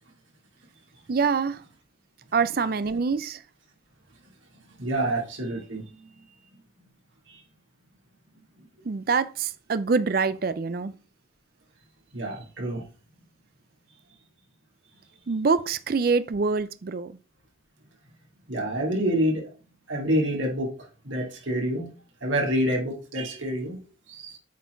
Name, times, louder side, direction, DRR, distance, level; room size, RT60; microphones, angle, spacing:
voice 1, 1.1-1.6 2.3-3.4 8.9-10.9 15.3-17.1, right 5 dB, 45° right, 0.4 m, -25 dB
voice 2, 4.8-6.1 7.3-7.4 12.1-12.8 18.5-19.4 19.9-20.7 21.0-21.9 22.2-23.8 24.1-24.4, right 1 dB, 75° right, 2.7 m, -27 dB
8.3 x 4.3 x 4.5 m
head